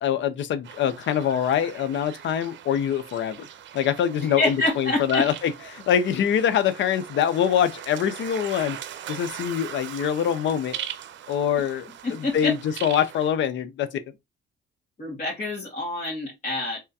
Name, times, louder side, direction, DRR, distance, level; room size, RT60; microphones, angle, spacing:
voice 1, 0.0-3.4 3.7-8.8 9.1-10.8 11.3-12.5 12.8-14.0, left 9 dB, 70° left, 0.6 m, -24 dB
sound 1, 0.6-13.3, right 10 dB, 65° right, 0.6 m, -40 dB
voice 2, 4.2-5.2 11.6-11.7 12.0-12.5 15.0-16.8, left 2 dB, 40° left, 2.1 m, -27 dB
3.5 x 3.3 x 2.7 m
cardioid pair, 90°, 20 cm